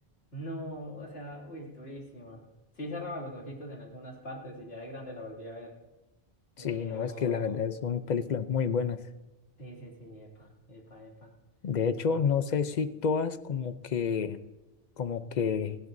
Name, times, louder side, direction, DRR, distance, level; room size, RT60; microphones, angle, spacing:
voice 1, 0.3-2.4 2.8-5.7 6.6-7.7 9.6-11.3, equal, 80° left, -1 dB, 2.9 m, -42 dB
voice 2, 6.6-9.0 11.6-14.4 15.0-15.8, left 6 dB, 50° left, 12 dB, 0.7 m, -29 dB
18.0 x 16.5 x 2.7 m, 1.1 s
omnidirectional pair, 1.0 m